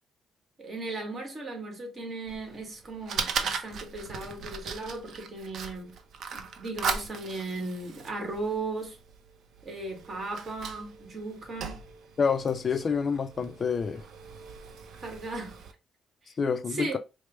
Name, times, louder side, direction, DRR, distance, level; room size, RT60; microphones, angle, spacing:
voice 1, 0.6-6.0 6.3-9.0 9.6-11.8 15.0-15.6 16.7-17.0, right 2 dB, 40° right, 1.6 m, -36 dB
Fire, 2.3-15.7, right 5 dB, 65° right, 0.6 m, -38 dB
voice 2, 12.2-14.0 16.4-17.0, left 6 dB, 45° left, 0.3 m, -27 dB
4.5 x 2.1 x 3.0 m
cardioid pair, 90°, 0 cm